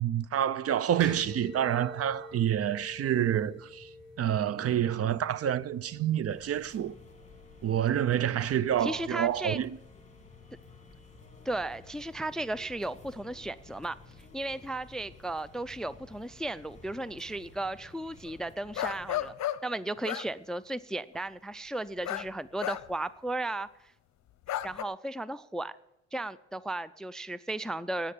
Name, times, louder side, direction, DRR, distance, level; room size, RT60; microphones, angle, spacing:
voice 1, 0.0-3.9 4.2-6.9 7.6-9.7, right 10 dB, 50° right, 0.5 m, -28 dB
sound 1, 1.0-18.3, equal, 85° right, 5.0 m, -51 dB
sound 2, 6.3-19.3, left 5 dB, 25° left, 2.4 m, -54 dB
voice 2, 8.8-9.6 11.5-14.0 14.3-23.7 24.6-25.8 26.1-28.1, right 2 dB, ahead, 0.4 m, -35 dB
sound 3, 18.3-18.4 18.8-19.6 20.0-20.3 22.0-22.3 22.6-22.9 24.5-24.8, left 13 dB, 65° left, 0.7 m, -33 dB
9.8 x 8.6 x 8.9 m
cardioid pair, 90°, 30 cm